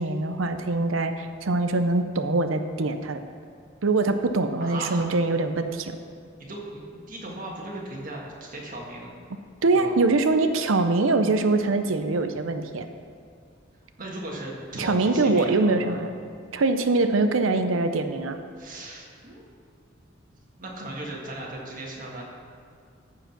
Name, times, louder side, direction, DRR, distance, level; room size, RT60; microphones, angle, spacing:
voice 1, 0.0-3.2 3.8-6.0 9.6-12.9 14.8-16.1 16.5-18.4, right 3 dB, 85° right, 8 dB, 0.7 m, -23 dB
voice 2, 4.6-5.0 6.4-6.8 7.1-9.2 9.7-9.9 14.0-16.0 18.6-19.4 20.6-22.2, right 1 dB, 45° right, -2 dB, 1.7 m, -37 dB
14.0 x 4.9 x 5.8 m, 2.3 s
head